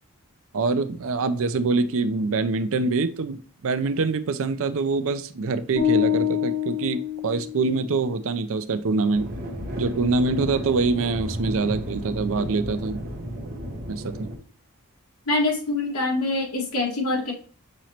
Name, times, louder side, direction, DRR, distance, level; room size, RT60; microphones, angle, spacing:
voice 1, 0.5-9.3 9.8-13.0 13.9-14.3, right 3 dB, 65° right, 11 dB, 0.5 m, -25 dB
sound 1, 5.8-7.9, left 9 dB, 35° left, 1.7 m, -25 dB
sound 2, 9.1-14.4, equal, 45° right, 1.0 m, -33 dB
voice 2, 15.3-17.3, left 2 dB, 80° left, -1 dB, 1.8 m, -24 dB
6.2 x 3.0 x 2.8 m, 0.42 s
head